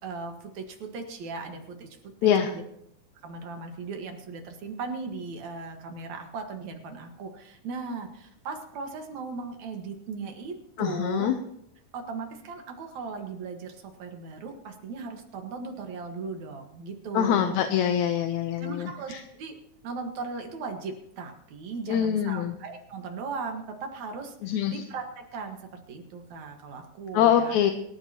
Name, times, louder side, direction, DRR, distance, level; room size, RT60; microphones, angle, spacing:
voice 1, 0.0-1.9 2.2-2.6 3.2-11.3 11.9-17.7 18.6-19.5 19.8-27.6, right 4 dB, 65° right, 4 dB, 2.8 m, -37 dB
voice 2, 10.8-11.4 17.1-19.2 21.9-22.5 24.4-24.8 27.1-27.7, left 9 dB, 75° left, 6 dB, 2.0 m, -24 dB
24.5 x 13.5 x 2.9 m, 0.76 s
omnidirectional pair, 3.8 m